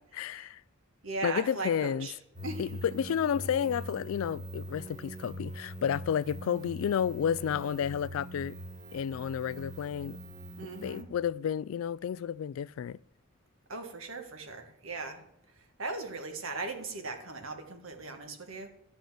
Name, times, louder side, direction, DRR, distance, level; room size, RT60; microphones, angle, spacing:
voice 1, 0.1-0.6 1.2-2.1 2.6-8.6 8.9-10.2 10.6-13.0, left 8 dB, 85° left, 0.3 m, -31 dB
voice 2, 1.0-2.1 2.4-2.7 3.1-3.2 10.6-11.1 13.7-18.7, right 3 dB, 85° right, 1.6 m, -38 dB
sound 1, 2.3-11.0, equal, 35° right, 1.2 m, -43 dB
12.5 x 5.3 x 7.5 m
head